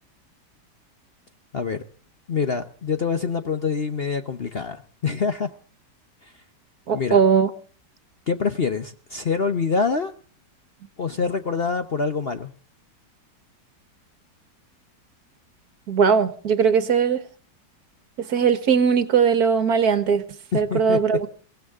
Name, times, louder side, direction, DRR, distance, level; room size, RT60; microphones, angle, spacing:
voice 1, 1.5-1.8 2.3-5.5 6.2-6.3 6.9-7.2 8.3-10.1 11.0-12.5 20.5-21.0, left 5 dB, 45° left, 0.9 m, -25 dB
voice 2, 6.9-7.5 15.9-17.2 18.2-20.2 20.5-21.3, right 6 dB, 60° right, 1.6 m, -19 dB
22.5 x 17.0 x 3.6 m
omnidirectional pair, 1.9 m